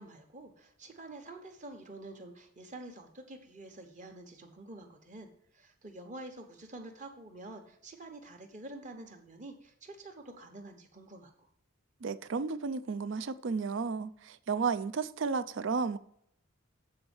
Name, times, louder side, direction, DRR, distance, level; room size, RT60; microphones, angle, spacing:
voice 1, 0.0-5.3 5.5-11.3, right 2 dB, 35° right, 1.2 m, -48 dB
voice 2, 12.0-16.0, right 5 dB, 60° right, 0.4 m, -33 dB
7.9 x 4.3 x 7.1 m
head